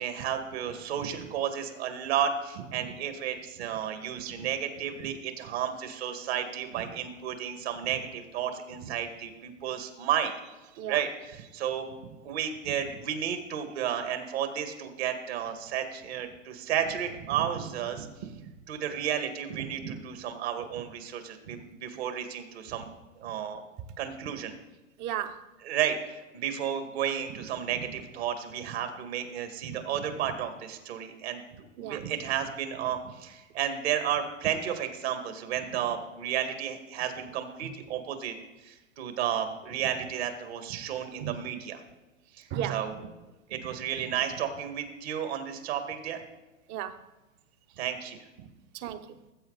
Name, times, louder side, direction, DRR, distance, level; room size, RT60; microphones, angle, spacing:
voice 1, 0.0-10.4 10.9-11.8 12.2-18.3 18.7-22.9 23.2-23.6 24.0-24.6 25.6-38.4 38.6-41.8 42.4-43.0 43.5-46.2 47.8-48.2, right 9 dB, 50° right, 1.9 m, -32 dB
voice 2, 25.0-25.5 31.8-32.0 37.6-37.7 41.2-41.4 42.5-42.9 46.7-47.0 48.7-49.2, right 10 dB, 25° right, 0.7 m, -34 dB
19.0 x 8.0 x 4.0 m
hypercardioid pair, 130°, 40 cm